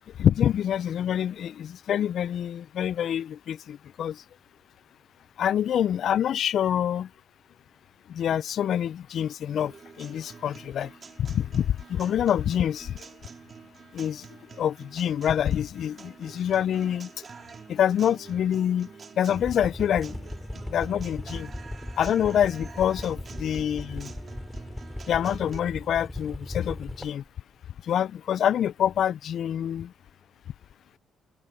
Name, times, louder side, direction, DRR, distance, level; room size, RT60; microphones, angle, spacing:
voice 1, 0.2-4.2 5.4-7.1 8.1-10.9 11.2-12.9 13.9-14.2 14.6-17.1 17.7-18.9 19.2-20.2 20.7-21.5 22.0-24.1 25.1-27.2 27.9-29.9, left 9 dB, 65° left, 0.3 m, -26 dB
Guitar, 9.6-25.6, right 5 dB, 45° right, 2.9 m, -47 dB
sound 1, 19.3-27.3 28.5-28.6 28.9-29.0, left 1 dB, 5° left, 4.4 m, -38 dB
cardioid pair, 90°, 0 cm